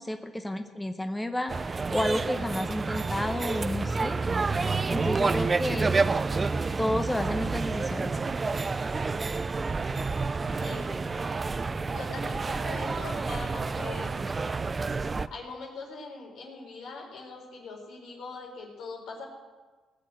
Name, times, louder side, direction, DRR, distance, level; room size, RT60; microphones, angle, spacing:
voice 1, 0.0-1.5 1.9-4.2 4.9-6.0 6.8-8.2, left 1 dB, 10° left, 6 dB, 0.9 m, -31 dB
sound 1, 1.5-15.3, right 4 dB, 30° right, 0.5 m, -29 dB
voice 2, 10.5-10.9 11.9-14.1 15.3-19.3, left 3 dB, 80° left, 0 dB, 4.0 m, -41 dB
18.0 x 6.8 x 7.6 m, 1.3 s
cardioid pair, 90°, 0 cm